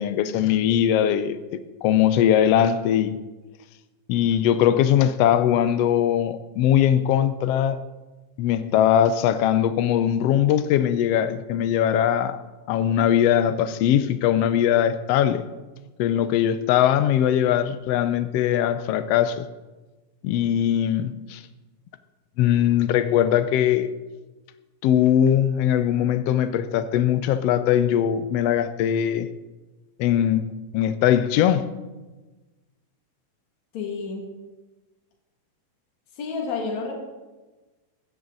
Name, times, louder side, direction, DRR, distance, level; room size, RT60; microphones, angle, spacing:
voice 1, 0.0-1.4 1.8-3.2 4.1-7.8 8.4-12.4 12.7-15.5 16.0-19.5 20.2-21.4 22.4-23.9 24.8-29.3 30.0-31.7, left 10 dB, 85° left, 1.4 m, -21 dB
voice 2, 33.7-34.3 36.1-36.9, left 4 dB, 65° left, 3.4 m, -30 dB
17.0 x 13.5 x 4.0 m
omnidirectional pair, 3.6 m